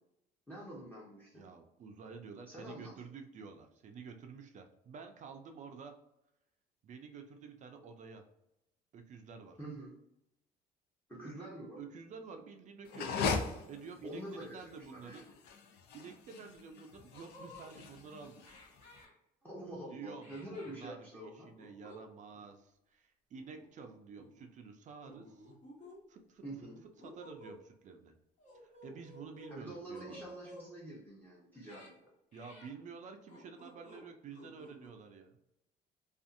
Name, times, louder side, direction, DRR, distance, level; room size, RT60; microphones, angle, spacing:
voice 1, 0.5-1.5 2.5-2.9 9.6-10.0 11.1-11.8 14.0-15.2 19.4-21.5 26.4-26.8 29.5-32.1, right 1 dB, 10° left, -6 dB, 0.8 m, -46 dB
voice 2, 1.3-6.0 6.8-8.3 8.9-9.6 11.2-11.5 11.8-15.3 15.9-18.4 19.9-25.5 26.1-26.4 27.0-28.1 28.5-30.3 32.3-35.4, right 5 dB, 45° right, 5 dB, 0.4 m, -50 dB
sound 1, 12.9-19.0, left 5 dB, 70° left, 0.5 m, -39 dB
sound 2, 16.6-16.7 17.1-17.7 18.4-19.1 20.2-20.8 21.5-22.0 22.3-22.5 23.3-23.9 24.2-24.4 25.1-26.0 26.5-27.6 28.4-29.6 29.9-30.7 31.5-31.9 32.3-32.7 33.3-34.0 34.3-34.9, left 1 dB, 45° left, 1.2 m, -54 dB
2.5 x 2.4 x 2.5 m, 0.83 s
cardioid pair, 110°, 17 cm